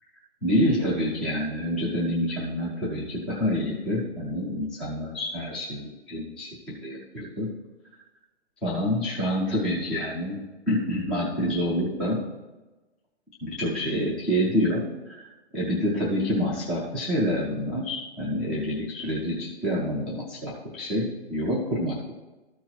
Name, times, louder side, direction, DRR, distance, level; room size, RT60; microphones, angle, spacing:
voice 1, 0.4-7.5 8.6-10.4 10.7-12.2 13.4-15.3 15.5-22.1, equal, ahead, -7 dB, 0.3 m, -27 dB
12.5 x 4.6 x 4.5 m, 1.1 s
hypercardioid pair, 135°, 35 cm